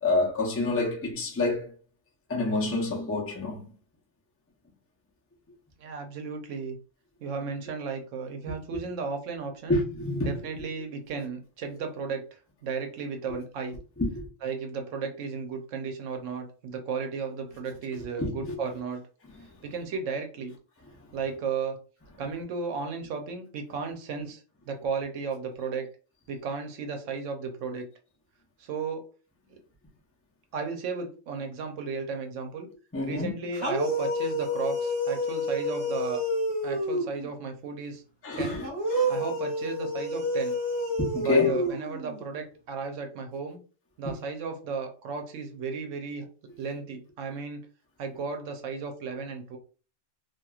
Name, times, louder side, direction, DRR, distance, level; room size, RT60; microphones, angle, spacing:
voice 1, 0.0-1.7 2.3-3.7 8.7-8.8 9.7-10.4 14.0-14.2 18.2-18.5 32.9-33.3 38.2-39.1 41.0-41.6, left 2 dB, 15° left, 0.5 m, -28 dB
voice 2, 5.8-6.8 7.2-9.8 10.2-13.8 14.4-19.1 19.6-20.5 21.1-21.8 22.2-25.9 26.3-27.9 28.6-29.0 30.5-32.7 33.0-36.2 36.6-38.0 38.4-38.6 39.1-40.6 41.2-43.6 44.0-46.3 46.6-47.7 48.0-49.6, right 5 dB, 85° right, 1.0 m, -34 dB
sound 1, 33.5-37.3 38.6-42.2, equal, 25° right, 1.1 m, -29 dB
2.9 x 2.5 x 2.3 m
omnidirectional pair, 1.2 m